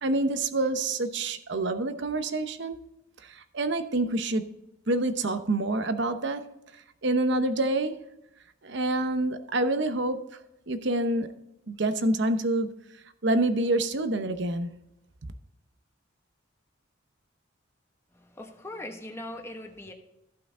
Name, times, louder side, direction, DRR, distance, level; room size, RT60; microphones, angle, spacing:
voice 1, 0.0-2.8 3.2-4.5 4.9-6.5 6.7-8.0 8.6-10.2 10.7-11.4 11.7-12.8 13.2-14.8, right 2 dB, 60° right, 0.8 m, -27 dB
voice 2, 18.1-19.9, left 1 dB, 15° left, 1.2 m, -40 dB
14.5 x 5.8 x 3.7 m
head